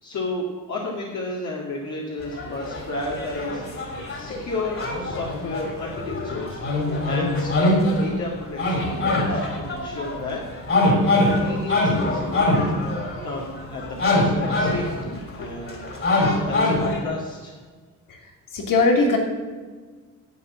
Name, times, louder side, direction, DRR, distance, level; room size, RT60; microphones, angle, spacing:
voice 1, 0.0-3.6 4.1-7.7 8.0-10.4 11.2-12.5 13.2-16.1 16.4-17.5, left 2 dB, 55° left, -3 dB, 2.2 m, -32 dB
sound 1, 2.2-8.2 8.6-17.0, left 1 dB, 40° left, 3.5 m, -24 dB
voice 2, 18.5-19.2, left 3 dB, 75° left, 1 dB, 3.0 m, -21 dB
11.5 x 8.4 x 7.3 m, 1.4 s
cardioid pair, 140°, 34 cm